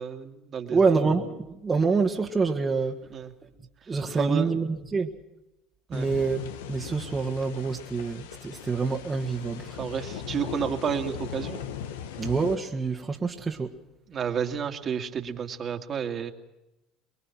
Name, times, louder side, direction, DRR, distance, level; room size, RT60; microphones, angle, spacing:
voice 1, 0.0-1.0 3.1-3.3 4.1-4.5 5.9-6.1 9.8-11.6 14.1-16.3, right 7 dB, 40° right, 2.3 m, -31 dB
voice 2, 0.7-3.0 3.9-5.1 5.9-6.4 6.7-9.8 12.2-13.7, right 4 dB, 25° right, 1.9 m, -26 dB
sound 1, 5.9-12.6, left 9 dB, 85° left, 1.4 m, -39 dB
25.0 x 22.5 x 6.0 m
hypercardioid pair, 80°, 0 cm